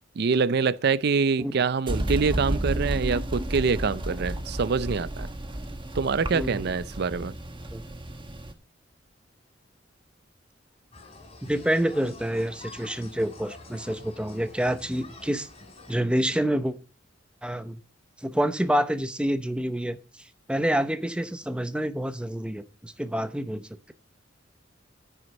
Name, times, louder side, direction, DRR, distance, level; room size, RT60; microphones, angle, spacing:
voice 1, 0.2-5.3 5.9-7.3, right 5 dB, 60° right, 0.5 m, -25 dB
sound 1, 1.9-8.5, right 1 dB, 25° right, 1.1 m, -32 dB
voice 2, 6.3-6.7 7.7-7.8 11.4-15.5 15.9-16.8 17.4-17.8 18.2-23.9, right 1 dB, 5° right, 0.7 m, -28 dB
sound 2, 10.9-15.9, left 2 dB, 30° left, 3.5 m, -47 dB
9.4 x 6.4 x 7.0 m
head